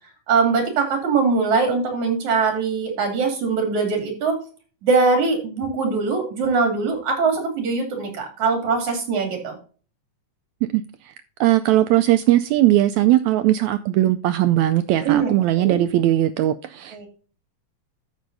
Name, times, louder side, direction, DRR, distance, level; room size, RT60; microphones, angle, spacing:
voice 1, 0.3-4.4 4.8-9.6 15.0-15.8 16.9-17.1, right 4 dB, 60° right, 4.1 m, -22 dB
voice 2, 10.7-11.1 11.4-17.1, right 14 dB, 85° right, 1.6 m, -19 dB
11.5 x 8.1 x 2.6 m
omnidirectional pair, 3.7 m